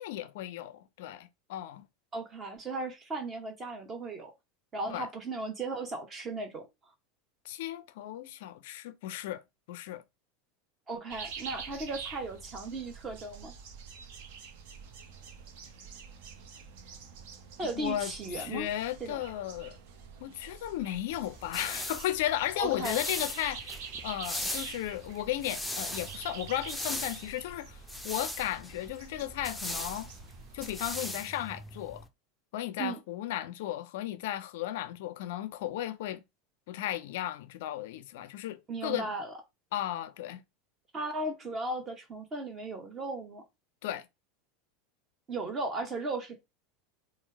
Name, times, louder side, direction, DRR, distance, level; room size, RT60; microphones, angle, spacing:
voice 1, 0.0-1.8 4.9-5.1 7.4-9.4 9.7-10.0 17.8-18.1 18.4-19.8 20.2-30.1 30.5-32.0 32.5-36.2 36.7-39.1 39.7-40.4 43.8-44.1, left 13 dB, 55° left, 0.4 m, -35 dB
voice 2, 2.1-4.3 4.7-6.7 10.9-13.5 17.6-18.7 19.0-19.2 22.6-23.0 32.8-33.0 38.7-39.3 40.9-43.4 45.3-46.4, right 2 dB, 25° right, 0.8 m, -36 dB
sound 1, 11.1-30.9, right 6 dB, 55° right, 0.6 m, -47 dB
sound 2, 21.1-32.1, left 1 dB, 5° left, 0.5 m, -40 dB
4.3 x 2.0 x 4.4 m
figure-of-eight pair, 80°, 0 cm